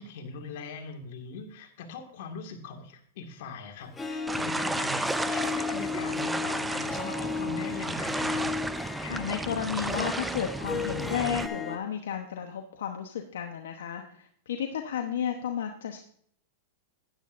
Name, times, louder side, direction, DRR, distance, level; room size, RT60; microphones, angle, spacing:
voice 1, 0.0-8.5, left 4 dB, 60° left, 2 dB, 2.0 m, -41 dB
Harp, 3.9-11.8, left 5 dB, 15° left, 1.0 m, -35 dB
sound 1, 4.3-11.5, right 2 dB, 5° right, 0.5 m, -33 dB
voice 2, 9.0-16.0, left 8 dB, 80° left, 4 dB, 1.0 m, -33 dB
12.5 x 9.8 x 2.6 m, 0.62 s
hypercardioid pair, 130°, 0 cm